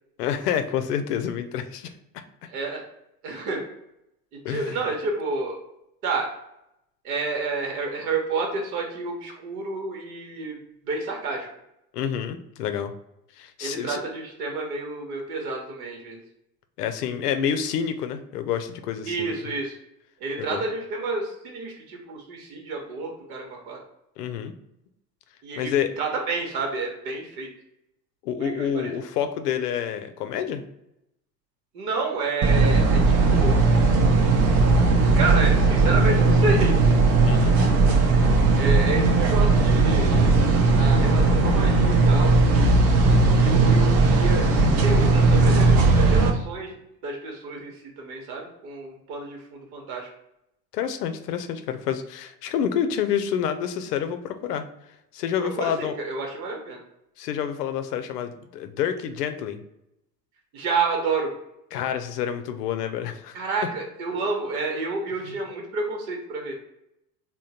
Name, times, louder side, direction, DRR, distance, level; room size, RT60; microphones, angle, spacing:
voice 1, 0.2-1.9 4.4-4.8 11.9-12.9 13.3-14.0 16.8-19.3 20.4-20.6 24.2-24.5 25.6-25.9 28.2-30.6 37.2-37.6 50.7-54.7 55.1-56.0 57.2-59.6 61.7-63.4 65.2-65.3, left 8 dB, 70° left, 8 dB, 0.6 m, -28 dB
voice 2, 2.5-2.8 3.2-3.6 4.3-5.6 6.0-6.3 7.0-11.5 13.6-16.2 19.0-19.8 20.2-23.8 25.4-27.5 28.4-28.9 31.7-33.6 35.1-36.8 38.5-40.3 40.7-42.7 43.4-44.5 44.8-46.7 47.0-50.1 55.4-56.8 60.5-61.3 63.3-66.5, right 3 dB, 60° right, 1 dB, 1.0 m, -30 dB
sound 1, 32.4-46.3, right 3 dB, 40° right, 0.7 m, -18 dB
3.6 x 2.2 x 4.1 m, 0.83 s
hypercardioid pair, 80°, 50 cm